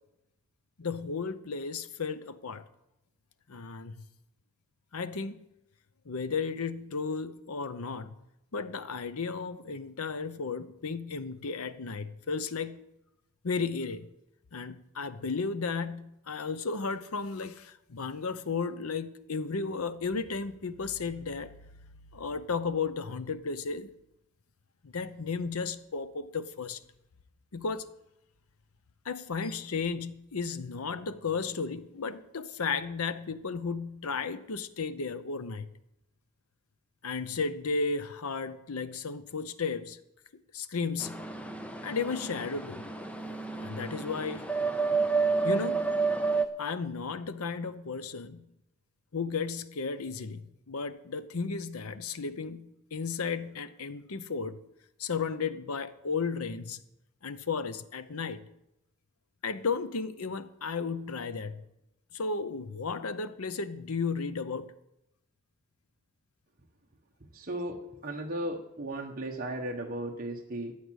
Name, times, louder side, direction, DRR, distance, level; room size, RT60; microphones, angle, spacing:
voice 1, 0.8-2.6 3.5-4.1 4.9-5.4 6.1-8.1 8.5-12.8 13.4-14.1 14.5-21.5 22.1-23.9 24.8-26.8 27.5-27.9 29.0-35.7 37.0-40.0 40.5-41.3 41.8-42.9 43.6-44.5 45.4-45.9 46.6-48.5 49.1-54.6 55.0-56.8 57.2-58.4 59.4-61.6 62.1-64.7, left 4 dB, 90° left, 0.8 m, -34 dB
sound 1, 41.0-46.5, right 4 dB, 5° left, 0.7 m, -30 dB
voice 2, 67.3-70.7, right 1 dB, 40° right, 1.1 m, -36 dB
14.5 x 8.6 x 6.4 m
head